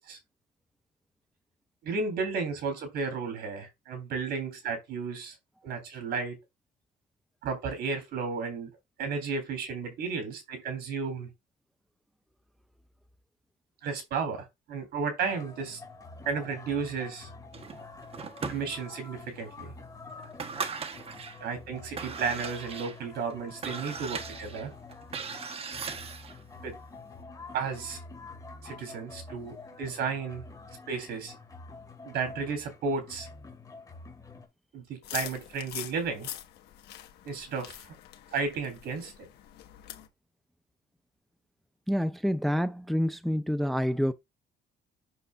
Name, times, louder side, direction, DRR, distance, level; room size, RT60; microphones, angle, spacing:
voice 1, 1.8-5.4 5.6-6.4 7.4-8.7 9.0-11.3 13.8-15.8 16.3-17.3 18.5-19.7 21.4-24.7 26.6-26.8 27.5-28.0 28.6-30.4 30.9-31.3 32.0-33.3 34.7-36.3 37.3-37.8 38.3-39.1, right 5 dB, 70° right, 3.6 m, -33 dB
sound 1, 15.3-34.5, left 3 dB, 20° left, 2.4 m, -47 dB
sound 2, 17.5-19.1 19.6-19.7 20.2-21.4 21.8-26.4, right 5 dB, 35° right, 1.1 m, -38 dB
sound 3, 35.0-40.1, left 12 dB, 75° left, 1.4 m, -43 dB
voice 2, 41.9-44.1, equal, ahead, 0.5 m, -27 dB
7.9 x 6.6 x 2.5 m
cardioid pair, 110°, 17 cm